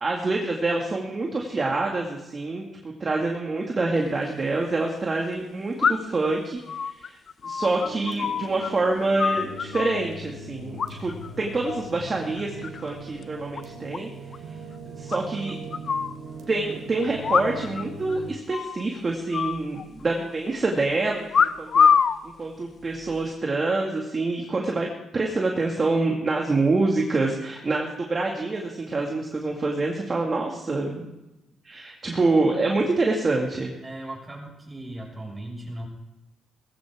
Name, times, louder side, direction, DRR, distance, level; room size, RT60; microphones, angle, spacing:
voice 1, 0.0-7.2 7.4-11.1 11.4-14.1 14.9-15.6 16.5-21.9 22.2-24.9 25.1-31.1 31.6-33.7, right 3 dB, 35° right, 0 dB, 2.2 m, -26 dB
sound 1, 4.0-4.1 5.8-6.3 6.7-8.7 9.0-10.0 10.8-11.3 11.6-12.0 12.4-12.9 13.2-13.3 13.5-13.6 13.9-14.0 14.3-14.4 15.1-16.1 17.2-17.8 18.1-18.2 18.5-18.8 19.3-20.2 21.3-22.2 22.9-23.3, left 6 dB, 50° left, 0.6 m, -24 dB
sound 2, 7.7-18.3, right 2 dB, 85° right, 3.4 m, -40 dB
voice 2, 33.8-35.9, right 1 dB, 15° right, -1 dB, 6.2 m, -37 dB
19.0 x 15.5 x 3.7 m, 0.96 s
cardioid pair, 90°, 0 cm